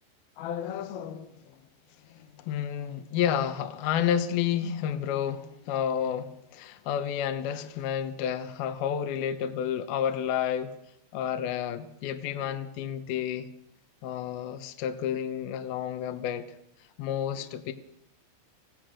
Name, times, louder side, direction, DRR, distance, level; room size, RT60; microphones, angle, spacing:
voice 1, 0.4-1.3 2.1-10.7 11.1-13.5 14.0-16.6 17.0-17.7, left 9 dB, 65° left, 2.7 m, -30 dB
27.5 x 17.5 x 6.4 m
omnidirectional pair, 5.3 m